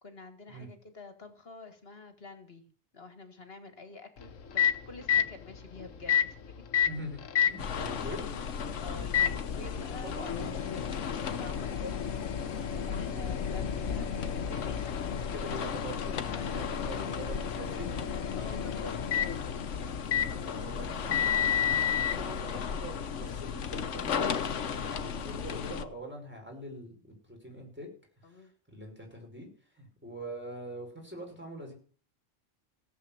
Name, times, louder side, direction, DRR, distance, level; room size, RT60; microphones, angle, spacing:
voice 1, 0.0-2.6 2.9-6.6 8.0-8.4 8.8-11.0 11.3-14.9 16.2-16.7 18.1-19.3 28.2-28.5, left 3 dB, 50° left, 8 dB, 1.9 m, -48 dB
Microwave oven, 4.2-22.2, left 9 dB, 85° left, 1.4 m, -33 dB
voice 2, 6.8-8.2 10.0-10.5 15.3-17.9 20.1-27.9 28.2-29.5 29.7-31.7, right 1 dB, 10° right, 1 dB, 5.3 m, -44 dB
sound 1, 7.6-25.8, left 6 dB, 70° left, 1.3 m, -35 dB
16.5 x 7.8 x 7.2 m, 0.42 s
omnidirectional pair, 1.3 m